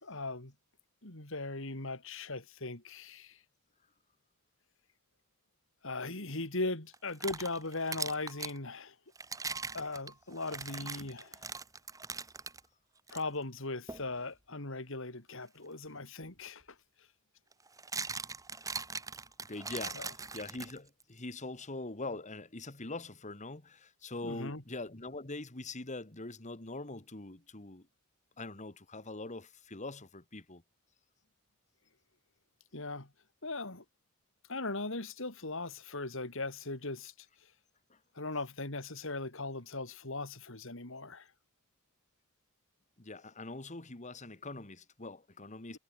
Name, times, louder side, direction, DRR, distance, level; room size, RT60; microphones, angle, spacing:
voice 1, 0.0-0.5 1.0-3.4 5.8-9.0 9.7-11.5 13.1-16.6 19.9-20.1 24.2-24.6 32.7-33.1 33.4-33.8 34.5-37.1 38.2-41.3, left 2 dB, 65° left, 3.7 m, -39 dB
sound 1, 6.9-8.6 9.2-12.6 13.1-13.2 13.9-14.1 16.2-16.3 17.5-21.0, right 4 dB, 15° right, 1.6 m, -41 dB
voice 2, 19.4-27.9 28.4-30.6 37.9-38.0 43.0-45.8, left 2 dB, 35° left, 2.1 m, -43 dB
head